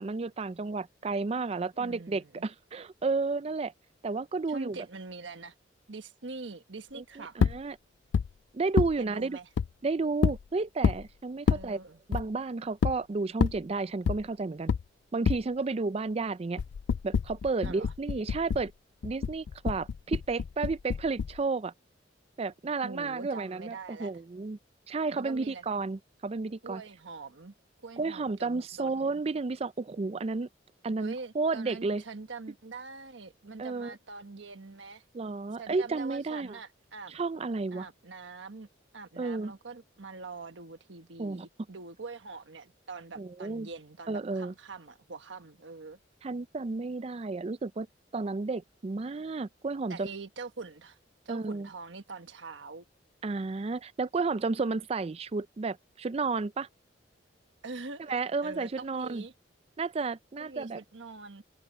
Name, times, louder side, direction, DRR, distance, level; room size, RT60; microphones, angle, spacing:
voice 1, 0.0-3.7 4.0-4.8 6.9-7.8 8.5-9.4 9.8-11.8 12.1-14.7 15.1-16.6 17.0-18.7 19.0-21.7 22.4-24.6 24.9-26.8 28.0-30.5 30.8-32.0 33.6-33.9 35.1-36.6 37.1-37.9 39.2-39.5 41.2-41.5 43.2-43.7 44.1-44.5 46.2-47.9 48.1-50.1 51.3-51.7 53.2-56.7 58.1-59.2 59.8-60.8, right 3 dB, 35° right, 0.4 m, -32 dB
voice 2, 1.8-2.5 4.5-5.5 5.9-7.4 9.0-9.5 11.5-12.0 17.6-17.9 22.8-24.1 25.1-25.6 26.6-27.5 27.8-29.2 31.0-35.0 35.6-37.1 37.7-38.7 38.9-46.0 49.9-51.0 51.2-52.8 57.6-58.1 58.4-59.3 60.3-61.4, right 3 dB, 80° right, 1.3 m, -44 dB
sound 1, 7.4-7.6 8.1-8.3 8.8-8.9 9.6-9.7 10.2-10.4 10.8-11.0 11.5-11.6 12.1-12.3 12.8-12.9 13.4-13.6 14.1-14.2 14.7-14.8 15.2-15.4 16.6-18.7 19.0-21.4, left 6 dB, 65° left, 0.3 m, -27 dB
head